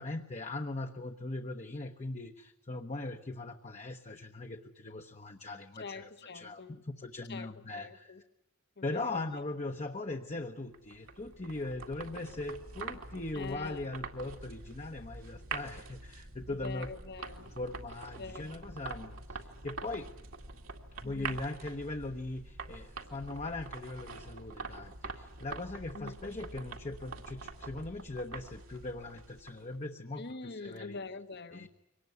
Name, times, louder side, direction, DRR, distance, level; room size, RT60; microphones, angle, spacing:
voice 1, 0.0-8.1 8.8-16.9 17.5-20.1 21.0-31.0 31.5-31.7, left 2 dB, 35° left, 1.0 m, -40 dB
voice 2, 5.8-6.8 7.3-8.2 8.8-9.4 13.3-13.9 16.5-17.6 18.2-18.6 21.0-21.4 25.9-26.1 30.2-31.7, left 4 dB, 55° left, 1.3 m, -44 dB
sound 1, 10.7-29.8, right 4 dB, 75° right, 2.3 m, -45 dB
24.0 x 19.0 x 9.4 m
head